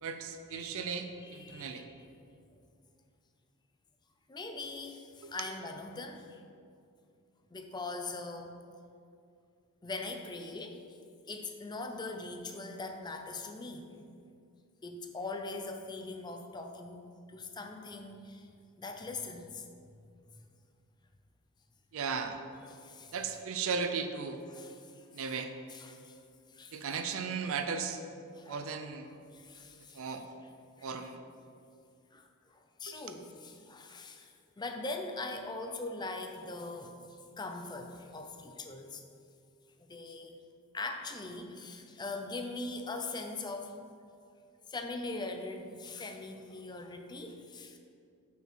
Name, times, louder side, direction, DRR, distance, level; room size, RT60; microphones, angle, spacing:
voice 1, 0.0-1.8 5.2-5.3 21.9-22.4 23.1-24.4 25.1-25.5 26.7-28.0 28.5-29.1 29.9-30.2 30.8-31.2 32.9-33.0, right 5 dB, 65° right, 8 dB, 0.5 m, -36 dB
voice 2, 0.5-2.1 4.3-6.4 7.5-8.6 9.8-10.8 11.3-14.0 14.8-18.5 18.8-19.6 22.7-23.1 24.5-25.0 25.7-26.2 26.5-26.8 28.3-28.7 29.3-30.0 30.8-30.9 32.1-36.9 37.4-39.0 39.8-40.3 40.7-43.8 44.7-47.8, left 3 dB, 20° left, 5 dB, 0.5 m, -41 dB
5.9 x 5.6 x 4.5 m, 2.4 s
head